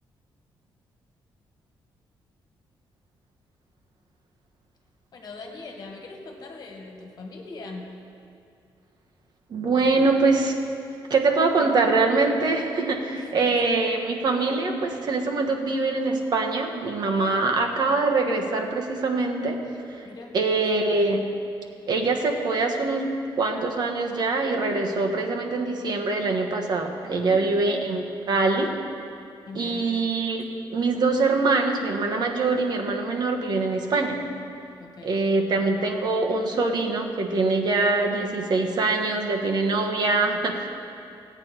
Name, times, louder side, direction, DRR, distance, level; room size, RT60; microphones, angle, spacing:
voice 1, 5.1-7.8 13.1-13.3 17.1-17.5 20.0-20.3 27.0-27.4 29.4-29.9 34.8-35.2, left 3 dB, 50° left, 1 dB, 1.8 m, -41 dB
voice 2, 9.5-10.6 11.1-19.6 19.9-20.1 20.3-21.2 21.9-23.1 23.4-28.7 29.5-34.2 35.0-40.7, right 3 dB, 55° right, 2 dB, 1.3 m, -24 dB
16.0 x 8.8 x 4.5 m, 2.5 s
cardioid pair, 125°, 9 cm